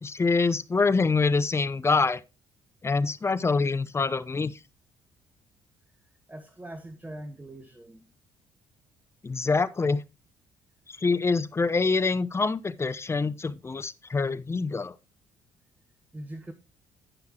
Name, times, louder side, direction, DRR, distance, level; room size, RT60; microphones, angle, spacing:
voice 1, 0.0-2.2 2.8-4.6 9.2-10.0 11.0-14.9, left 4 dB, 25° left, 0.7 m, -25 dB
voice 2, 6.3-8.1 16.1-16.5, right 1 dB, 15° right, 1.3 m, -42 dB
17.0 x 5.8 x 2.9 m
figure-of-eight pair, 50°, 11 cm